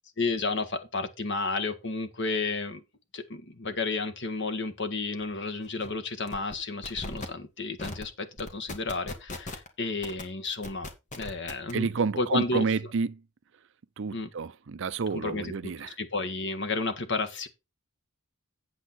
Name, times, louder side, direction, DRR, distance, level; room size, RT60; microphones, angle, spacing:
voice 1, 0.2-2.8 3.1-10.9 11.1-11.9 12.2-12.7 14.1-14.3 15.1-17.5, left 3 dB, 55° left, 1.4 m, -32 dB
sound 1, 5.2-5.3 5.6-5.9 6.3-6.6 6.8-7.3 7.8-8.0 8.4-9.7 10.0-10.2 10.6-11.7, left 2 dB, 35° left, 1.5 m, -38 dB
voice 2, 11.7-13.2 14.0-16.0, right 4 dB, 55° right, 0.5 m, -30 dB
8.0 x 8.0 x 4.2 m
head